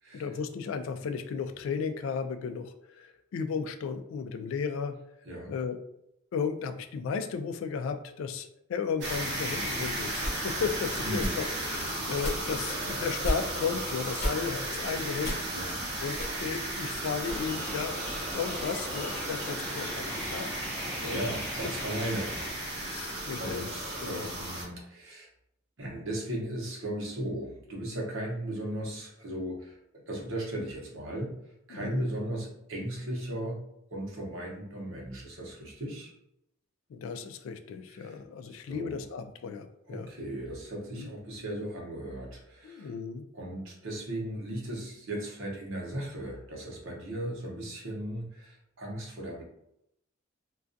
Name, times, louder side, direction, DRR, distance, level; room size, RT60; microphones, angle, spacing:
voice 1, 0.1-5.0 5.5-5.8 6.3-15.4 16.0-18.0 18.3-20.5 21.0-21.2 22.8-23.7 24.1-24.3 31.7-32.0 36.9-40.1 40.9-41.1 42.6-43.2, left 6 dB, 85° left, 10 dB, 0.3 m, -34 dB
sound 1, 9.0-24.7, right 1 dB, 60° right, 0.6 m, -35 dB
sound 2, 10.2-10.4 11.1-11.3 12.1-12.4 13.2-13.4 14.2-14.4 15.2-15.5 16.2-16.3 17.2-17.4, equal, 40° left, 0.8 m, -32 dB
voice 2, 11.0-11.4 15.5-15.8 20.7-23.0 23.4-25.3 25.8-31.4 31.7-33.6 33.9-36.1 37.9-38.2 38.4-39.0 39.9-42.9 43.3-49.4, right 1 dB, 85° right, -1 dB, 0.8 m, -37 dB
sound 3, 17.3-22.5, equal, 5° left, 0.6 m, -41 dB
2.3 x 2.2 x 2.5 m, 0.79 s
head